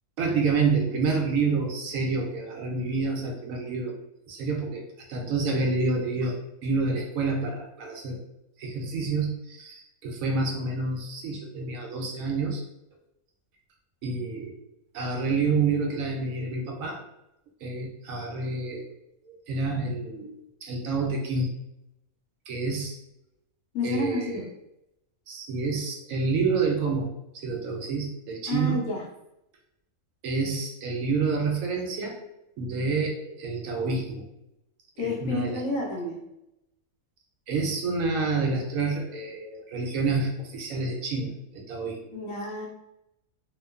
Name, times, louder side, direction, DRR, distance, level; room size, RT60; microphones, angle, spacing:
voice 1, 0.2-4.0 4.3-4.8 5.1-8.2 8.6-12.6 14.0-14.5 14.9-17.0 17.6-18.9 19.2-21.5 22.5-23.0 23.8-24.4 25.3-28.8 30.2-32.2 32.6-34.2 35.0-35.6 37.5-42.1, right 4 dB, 75° right, 0 dB, 1.0 m, -28 dB
voice 2, 23.7-24.4 28.5-29.0 35.0-36.2 42.1-42.7, left 2 dB, 75° left, -1 dB, 1.1 m, -30 dB
2.9 x 2.1 x 2.3 m, 0.85 s
omnidirectional pair, 1.5 m